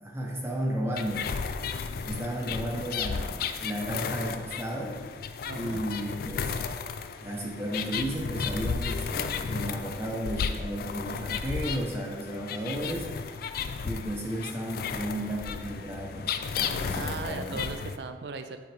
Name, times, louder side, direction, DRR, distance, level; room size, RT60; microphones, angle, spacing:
voice 1, 0.0-1.3 2.0-5.0 5.6-6.6 7.2-13.4 13.8-17.6, right 1 dB, 15° right, -2 dB, 0.8 m, -34 dB
sound 1, 1.0-18.0, left 6 dB, 55° left, 0.3 m, -34 dB
voice 2, 5.5-5.8 16.9-18.6, right 4 dB, 65° right, 8 dB, 0.4 m, -38 dB
9.0 x 3.8 x 3.4 m, 1.4 s
head